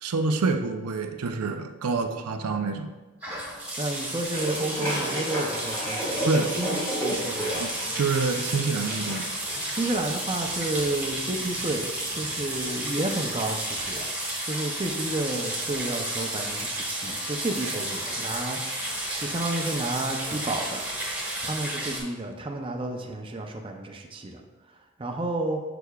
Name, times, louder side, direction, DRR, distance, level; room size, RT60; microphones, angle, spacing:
voice 1, 0.0-2.9 6.3-6.5 7.6-7.7 7.9-9.2, right 4 dB, 90° right, 6 dB, 0.5 m, -27 dB
sound 1, 3.2-22.0, right 1 dB, 5° right, 1.4 m, -32 dB
voice 2, 3.8-7.7 9.8-18.6 19.2-20.8 21.4-24.4 25.0-25.6, right 2 dB, 25° right, 2 dB, 0.5 m, -31 dB
sound 2, 4.3-10.2, equal, 10° left, 1.8 m, -33 dB
6.8 x 6.4 x 2.3 m, 1.2 s
head